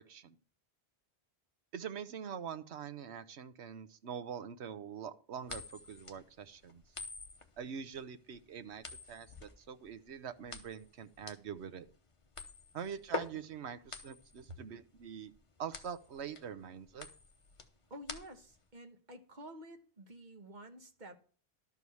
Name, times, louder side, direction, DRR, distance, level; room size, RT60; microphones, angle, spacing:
voice 1, 1.7-6.8 7.6-11.8 12.7-15.3 15.6-17.1, right 7 dB, 90° right, 12 dB, 1.1 m, -44 dB
sound 1, 5.4-18.6, left 3 dB, 30° left, 1.0 m, -47 dB
voice 2, 17.9-21.2, equal, 45° right, 6 dB, 1.4 m, -50 dB
12.0 x 4.7 x 7.0 m, 0.41 s
omnidirectional pair, 1.1 m